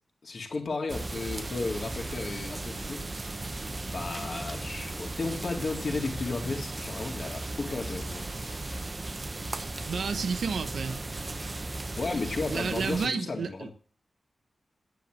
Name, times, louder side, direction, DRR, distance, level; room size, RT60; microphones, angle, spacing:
voice 1, 0.2-3.2 3.9-8.8 12.0-13.7, left 3 dB, 50° left, 2.2 m, -34 dB
sound 1, 0.9-13.1, right 2 dB, 25° right, 0.8 m, -36 dB
voice 2, 9.8-11.0 12.5-13.7, right 5 dB, 85° right, 1.1 m, -31 dB
10.0 x 8.4 x 6.1 m
wide cardioid pair, 145°, 0 cm